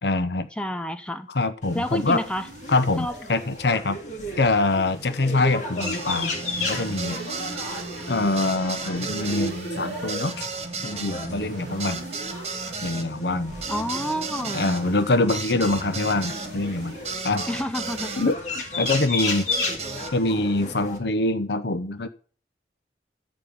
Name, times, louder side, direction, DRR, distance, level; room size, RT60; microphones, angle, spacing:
voice 1, 0.0-0.5 1.3-2.2 2.7-4.0 4.4-7.2 8.1-10.5 10.8-12.0 12.8-13.5 14.5-17.0 17.2-17.4 18.2-19.5 20.1-22.1, left 2 dB, 70° left, 12 dB, 0.8 m, -24 dB
voice 2, 0.6-1.3 1.7-2.5 3.0-3.2 13.7-14.8 17.5-18.1, left 1 dB, 5° left, 9 dB, 0.6 m, -29 dB
sound 1, 1.6-21.0, left 2 dB, 45° left, 2.4 m, -34 dB
sound 2, 1.7-3.7 4.2-6.1 6.5-8.5 9.0-10.5 11.3-12.9 13.5-15.1 15.7-17.3 17.8-18.4, right 2 dB, 80° right, 1.4 m, -42 dB
sound 3, 5.8-18.3 18.9-20.1, right 4 dB, 35° right, 1.4 m, -35 dB
13.0 x 5.4 x 8.5 m, 0.43 s
head